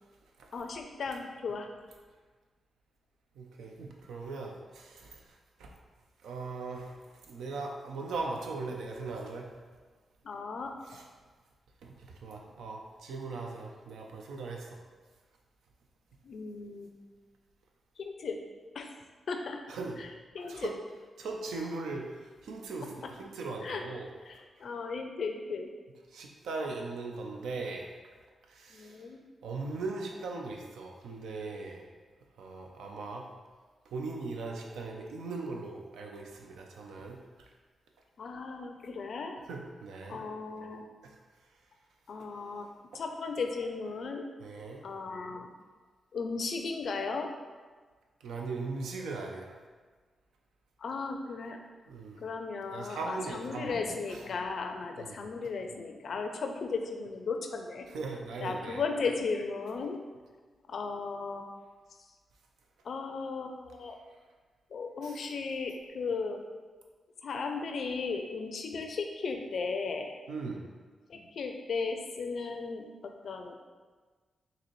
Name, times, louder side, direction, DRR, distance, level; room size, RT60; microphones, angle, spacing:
voice 1, 0.5-1.7 10.2-10.7 16.2-16.9 18.0-18.4 18.7-18.9 19.3-19.6 20.0-20.7 22.8-23.1 23.6-23.8 24.3-25.7 28.7-29.2 38.2-39.4 40.1-40.9 42.1-42.7 42.9-44.3 44.8-45.5 46.1-47.3 50.8-51.6 52.2-57.9 58.4-60.0 60.7-61.5 62.8-64.0 64.7-66.4 67.2-70.1 71.1-73.5, left 4 dB, 65° left, 5 dB, 0.4 m, -36 dB
voice 2, 3.4-4.9 5.6-5.7 6.2-6.9 7.3-9.5 11.8-11.9 12.2-14.7 19.7-20.0 20.5-20.7 21.2-22.0 22.4-24.1 26.1-27.9 28.6-28.9 29.4-31.8 32.4-33.2 33.9-37.2 39.5-40.2 44.4-44.8 48.2-49.5 51.9-52.2 52.7-53.8 55.0-55.2 57.9-58.8 65.0-65.1 70.3-70.6, right 3 dB, 80° right, 1 dB, 0.4 m, -39 dB
4.0 x 2.7 x 3.0 m, 1.4 s
supercardioid pair, 40°, 0 cm